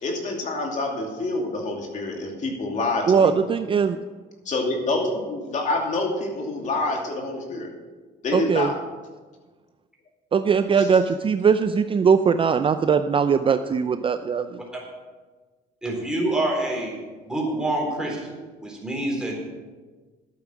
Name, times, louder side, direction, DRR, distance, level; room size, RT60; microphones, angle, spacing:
voice 1, 0.0-3.3 4.4-7.7 8.2-8.7 10.8-10.9, left 2 dB, 45° left, 0 dB, 2.7 m, -27 dB
voice 2, 3.1-4.0 8.3-8.7 10.3-14.6, right 6 dB, 30° right, 10 dB, 0.5 m, -20 dB
voice 3, 15.8-16.9 17.3-19.4, right 1 dB, 5° right, -1 dB, 4.1 m, -26 dB
11.5 x 8.9 x 6.2 m, 1.3 s
cardioid pair, 110°, 17 cm